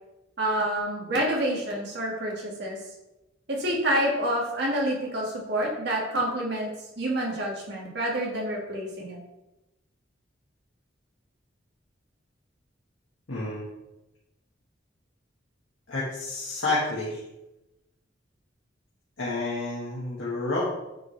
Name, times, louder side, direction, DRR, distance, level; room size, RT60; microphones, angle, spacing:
voice 1, 0.4-2.8 3.5-9.2, right 1 dB, 60° right, -2 dB, 1.9 m, -28 dB
voice 2, 13.3-13.6 15.9-17.2 19.2-20.6, left 2 dB, 85° left, -7 dB, 1.7 m, -29 dB
9.2 x 4.7 x 3.3 m, 0.96 s
head